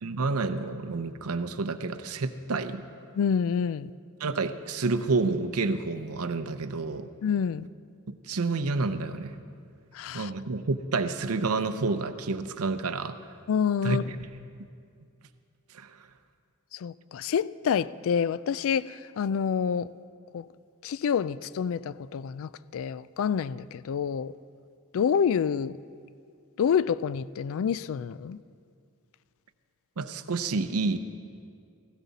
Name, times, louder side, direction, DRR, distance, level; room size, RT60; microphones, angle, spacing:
voice 1, 0.0-2.8 4.2-7.1 8.1-9.4 10.1-13.3 13.8-14.3 15.7-16.1 30.0-31.0, right 3 dB, 75° right, 10 dB, 0.7 m, -29 dB
voice 2, 3.2-3.9 7.2-7.7 9.9-10.3 13.5-14.0 16.7-19.9 20.3-20.5 20.8-24.3 24.9-25.8 26.6-28.4, left 7 dB, 65° left, 18 dB, 0.3 m, -27 dB
17.0 x 16.0 x 4.1 m, 2.3 s
head